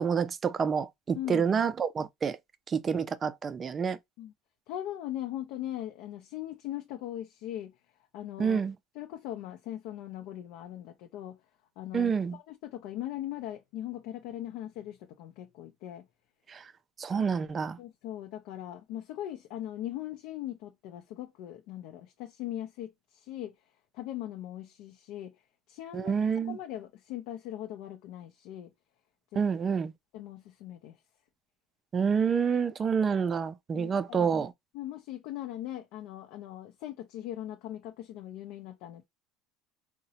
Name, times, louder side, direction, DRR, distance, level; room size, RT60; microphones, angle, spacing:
voice 1, 0.0-2.4 2.7-4.0 8.4-8.7 11.9-12.4 16.5-16.6 17.0-17.8 25.9-26.6 29.4-29.9 31.9-34.5, right 6 dB, 25° right, 0.3 m, -28 dB
voice 2, 1.1-1.5 4.2-4.3 4.7-7.7 8.1-8.6 8.9-11.4 11.8-16.1 17.8-23.5 23.9-25.3 25.7-28.7 29.3-29.4 30.1-31.0 33.7-34.3 34.7-39.1, left 12 dB, 65° left, 0.5 m, -40 dB
3.8 x 2.1 x 2.7 m
supercardioid pair, 130°, 0 cm